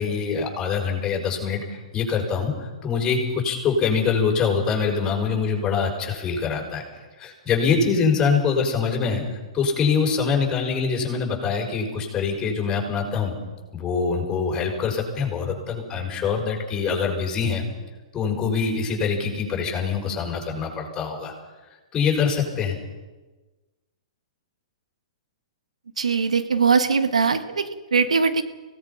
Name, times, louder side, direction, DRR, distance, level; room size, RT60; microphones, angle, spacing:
voice 1, 0.0-6.8 7.2-9.2 9.5-13.3 13.7-17.6 18.1-21.3 21.9-22.8, left 5 dB, 20° left, 1 dB, 5.9 m, -24 dB
voice 2, 26.0-28.4, right 5 dB, 85° right, 10 dB, 1.4 m, -21 dB
25.5 x 18.0 x 5.7 m, 1.2 s
hypercardioid pair, 120°, 3 cm